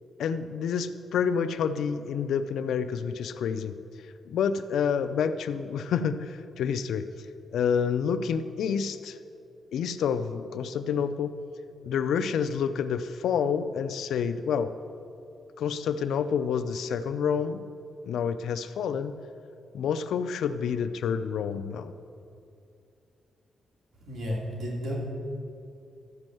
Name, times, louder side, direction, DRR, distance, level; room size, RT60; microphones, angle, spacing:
voice 1, 0.2-3.8 4.3-7.1 7.5-9.2 9.7-11.4 11.8-14.7 15.6-17.6 18.0-19.2 19.7-21.9, left 7 dB, 85° left, 11 dB, 0.5 m, -28 dB
voice 2, 24.0-25.0, equal, 65° right, -3 dB, 2.6 m, -32 dB
13.5 x 5.3 x 7.7 m, 2.5 s
cardioid pair, 110°, 0 cm